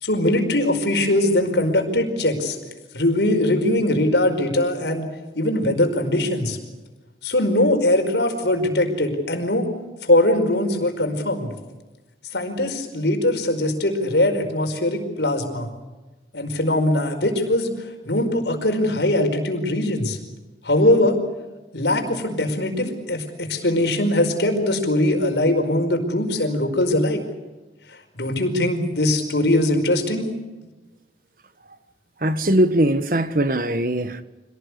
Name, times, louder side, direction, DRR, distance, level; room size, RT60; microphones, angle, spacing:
voice 1, 0.0-2.6 2.9-5.1 5.3-6.6 7.2-9.7 10.0-11.5 12.3-15.7 16.3-20.2 20.6-21.2 21.7-27.2 27.9-30.2, left 1 dB, 75° left, 5.0 m, -21 dB
voice 2, 32.2-34.2, right 1 dB, 50° right, 1.4 m, -20 dB
26.5 x 18.5 x 8.3 m
head